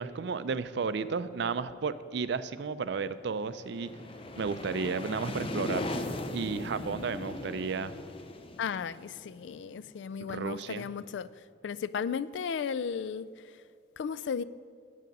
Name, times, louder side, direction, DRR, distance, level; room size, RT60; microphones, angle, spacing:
voice 1, 0.0-3.9 4.4-5.9 6.3-7.9 10.2-10.9, right 5 dB, 65° right, 14 dB, 0.4 m, -33 dB
sound 1, 3.3-10.0, left 1 dB, 30° left, 0.6 m, -39 dB
voice 2, 8.6-11.3 11.6-13.3 14.0-14.4, left 6 dB, 70° left, 18 dB, 0.3 m, -34 dB
9.2 x 8.4 x 5.3 m, 2.4 s
head